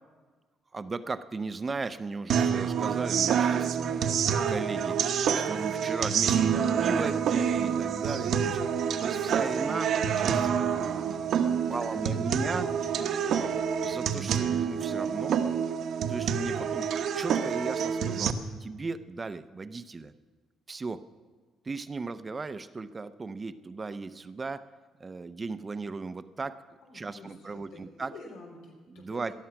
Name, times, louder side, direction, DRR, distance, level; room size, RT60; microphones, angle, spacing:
voice 1, 0.7-4.2 4.5-8.6 9.0-12.7 13.8-15.4 16.1-16.9 17.1-20.1 20.7-21.1 21.6-24.7 25.0-26.6 26.9-28.1 28.9-29.3, right 4 dB, 25° right, 12 dB, 0.6 m, -36 dB
sound 1, 2.3-18.3, right 7 dB, 60° right, 1.1 m, -27 dB
voice 2, 11.6-13.6 16.5-16.7 26.8-29.3, left 2 dB, 90° left, -1 dB, 4.3 m, -46 dB
19.0 x 12.5 x 5.9 m, 1.4 s
cardioid pair, 125°, 0 cm